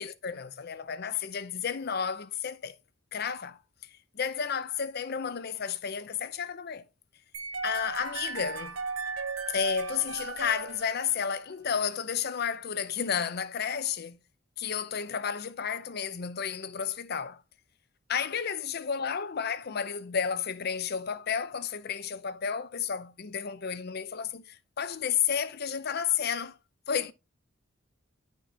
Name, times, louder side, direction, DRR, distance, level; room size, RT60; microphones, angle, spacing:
voice 1, 0.0-2.7 3.1-3.6 4.1-6.8 7.6-8.8 9.5-14.2 14.6-17.4 18.1-26.6 26.9-27.1, left 7 dB, 50° left, 0.6 m, -32 dB
sound 1, 7.3-11.5, right 4 dB, 85° right, 0.8 m, -36 dB
11.0 x 4.5 x 2.8 m
head